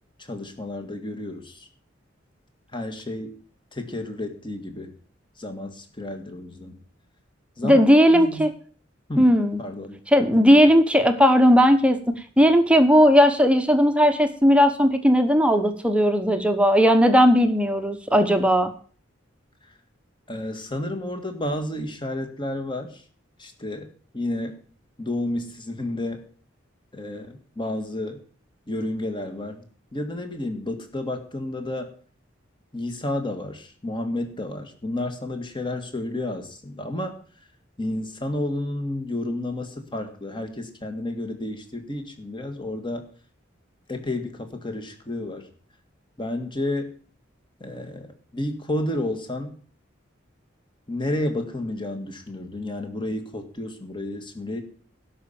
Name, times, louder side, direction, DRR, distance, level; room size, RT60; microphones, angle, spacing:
voice 1, 0.2-1.7 2.7-3.3 3.7-4.9 5.4-6.8 7.6-8.5 9.1-9.3 9.6-10.0 10.4-10.7 20.3-23.0 23.4-23.9 24.1-24.6 25.0-26.2 26.9-28.2 28.7-29.7 29.9-31.9 32.7-37.2 37.8-43.1 43.9-45.5 46.2-46.9 47.6-49.5 50.9-54.6, left 1 dB, 25° left, 6 dB, 1.9 m, -31 dB
voice 2, 7.6-8.5 9.2-9.6 10.1-18.7, equal, 5° right, 7 dB, 1.0 m, -17 dB
12.0 x 5.7 x 8.7 m, 0.43 s
head